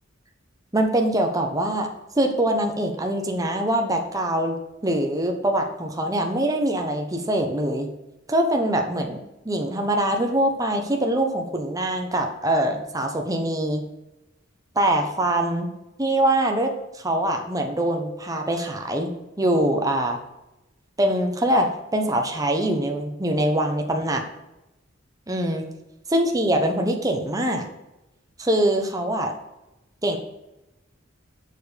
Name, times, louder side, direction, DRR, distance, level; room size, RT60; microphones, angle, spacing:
voice 1, 0.7-1.9 2.1-4.6 4.8-7.9 8.3-9.2 9.4-13.8 14.7-15.7 16.0-20.2 21.0-24.2 25.3-25.6 26.1-27.7 28.4-29.3 30.0-30.2, right 1 dB, 20° right, 3 dB, 1.1 m, -23 dB
7.1 x 6.3 x 5.1 m, 0.95 s
head